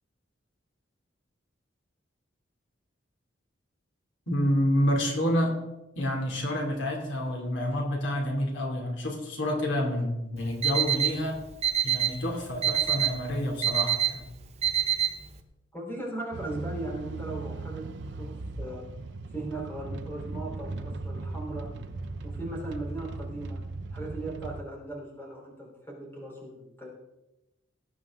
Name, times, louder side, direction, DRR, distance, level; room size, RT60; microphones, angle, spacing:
voice 1, 4.3-5.5 6.0-11.4 11.8-14.2, equal, 80° left, 0 dB, 2.8 m, -28 dB
Alarm, 10.4-15.4, right 10 dB, 35° right, 1.0 m, -27 dB
voice 2, 15.7-17.9 18.1-18.8 19.3-21.7 22.2-23.6 23.9-26.9, right 2 dB, 10° left, -3 dB, 3.8 m, -38 dB
sound 1, 16.3-24.6, right 3 dB, 65° right, 0.7 m, -38 dB
18.5 x 8.8 x 3.7 m, 0.95 s
head